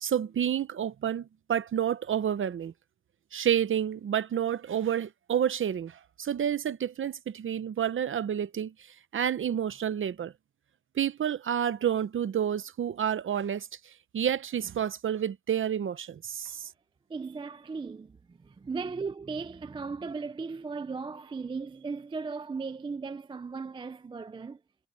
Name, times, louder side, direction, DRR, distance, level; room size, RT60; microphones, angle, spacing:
voice 1, 0.0-2.7 3.3-8.7 9.1-10.3 10.9-16.7, right 9 dB, 40° right, 0.7 m, -29 dB
voice 2, 17.1-24.6, right 4 dB, 15° right, 0.3 m, -37 dB
wide cardioid pair, 165°, 33 cm